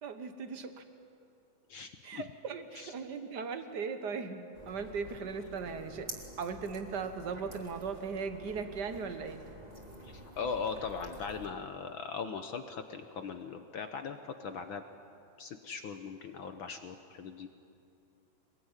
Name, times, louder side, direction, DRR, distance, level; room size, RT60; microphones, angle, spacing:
voice 1, 0.0-0.8 2.0-4.4 4.7-6.1 6.4-9.4, right 5 dB, 55° right, 8 dB, 1.1 m, -38 dB
voice 2, 1.7-2.3 2.7-2.9 10.0-14.8 15.4-17.5, left 5 dB, 75° left, 7 dB, 1.1 m, -39 dB
sound 1, 4.5-11.5, right 1 dB, 15° right, 3.0 m, -49 dB
25.0 x 21.0 x 9.8 m, 2.6 s
omnidirectional pair, 3.6 m